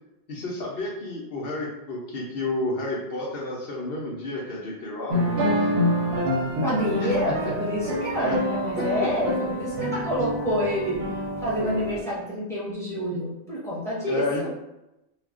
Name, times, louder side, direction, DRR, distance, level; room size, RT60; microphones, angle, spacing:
voice 1, 0.3-5.5 7.0-7.1 8.2-8.4 8.8-8.9 14.1-14.5, left 2 dB, 60° left, -3 dB, 0.7 m, -31 dB
sound 1, 5.1-12.0, equal, 65° right, 0.7 m, -27 dB
voice 2, 6.6-11.0 11.4-14.5, equal, 5° left, -7 dB, 0.7 m, -28 dB
2.3 x 2.1 x 3.5 m, 0.93 s
omnidirectional pair, 1.3 m